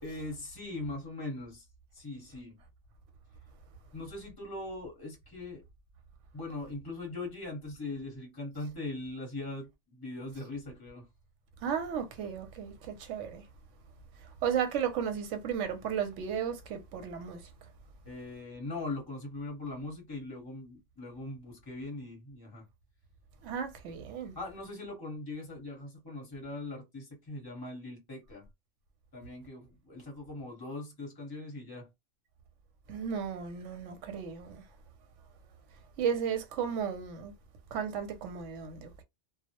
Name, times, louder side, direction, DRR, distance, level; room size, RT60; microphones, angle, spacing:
voice 1, 0.0-1.7 1.9-2.6 3.9-5.6 6.3-11.1 18.0-22.6 24.4-28.5 29.1-31.9, left 2 dB, 20° left, 0.9 m, -41 dB
voice 2, 11.6-13.4 14.4-17.4 23.4-24.4 32.9-34.6 36.0-37.3 37.7-39.0, right 7 dB, 80° right, 0.9 m, -34 dB
2.2 x 2.0 x 2.8 m
omnidirectional pair, 1.2 m